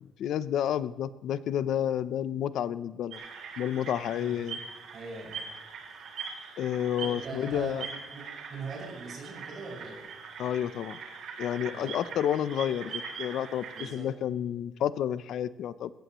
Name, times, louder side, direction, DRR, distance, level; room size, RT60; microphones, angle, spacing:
voice 1, 0.2-3.2 3.6-4.6 6.6-7.8 10.4-11.0 11.4-13.6 13.9-15.9, left 10 dB, 65° left, 15 dB, 0.6 m, -30 dB
sound 1, 3.1-13.9, right 5 dB, 65° right, 3.2 m, -42 dB
voice 2, 4.1-4.4 4.9-5.4 5.7-5.8 7.0-10.1 11.7-11.9 13.7-14.1, right 4 dB, 40° right, -3 dB, 6.5 m, -42 dB
21.0 x 17.0 x 3.1 m, 1.2 s
cardioid pair, 160°, 0 cm